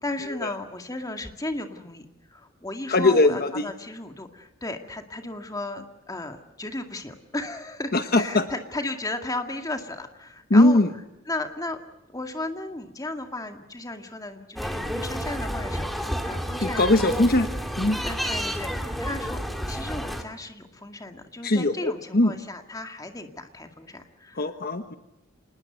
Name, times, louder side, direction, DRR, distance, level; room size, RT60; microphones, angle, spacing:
voice 1, 0.0-10.8 11.3-11.8 12.1-17.1 18.1-18.7 19.0-19.4 19.7-24.5, left 2 dB, 15° left, 5 dB, 2.1 m, -35 dB
voice 2, 2.9-3.7 7.9-8.5 10.5-10.9 16.6-17.5 17.8-18.0 21.4-22.3 24.3-25.0, left 2 dB, 45° left, 8 dB, 1.2 m, -20 dB
sound 1, 14.6-20.2, equal, ahead, 2.2 m, -30 dB
26.5 x 20.0 x 8.0 m, 0.97 s
head